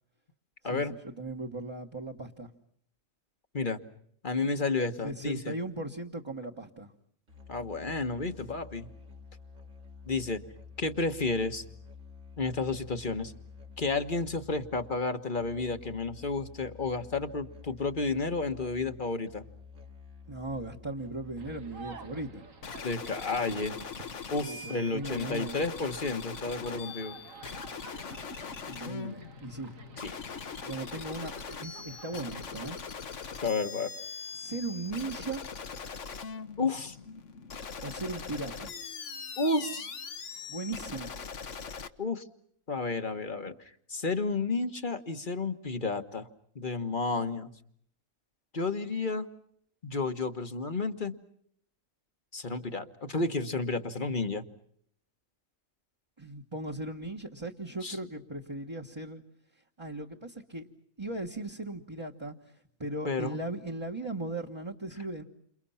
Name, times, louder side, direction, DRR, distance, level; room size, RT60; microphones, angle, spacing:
voice 1, 0.6-2.5 5.0-6.9 20.3-22.5 24.3-25.6 28.7-29.7 30.6-31.3 31.6-32.8 34.3-35.4 37.8-38.7 40.5-41.1 56.2-59.2 59.8-60.7 61.0-62.3 62.8-65.2, right 2 dB, 20° right, -1 dB, 1.6 m, -38 dB
voice 2, 4.2-5.5 7.5-8.9 10.1-10.4 10.8-11.6 12.4-13.3 13.8-19.4 22.8-23.8 24.3-27.2 30.0-30.1 33.4-33.9 36.6-37.0 39.4-39.9 42.0-42.2 42.7-46.3 46.5-47.5 48.5-49.3 49.8-51.1 52.3-54.4 57.8-58.0 63.0-63.4, left 3 dB, 40° left, 8 dB, 1.6 m, -31 dB
Musical instrument, 7.3-22.6, left 5 dB, 65° right, 2.9 m, -50 dB
sound 1, 21.3-32.6, right 4 dB, 85° right, 2.2 m, -51 dB
sound 2, 22.6-41.9, left 5 dB, 65° left, 1.6 m, -41 dB
29.5 x 28.0 x 5.8 m, 0.66 s
omnidirectional pair, 1.3 m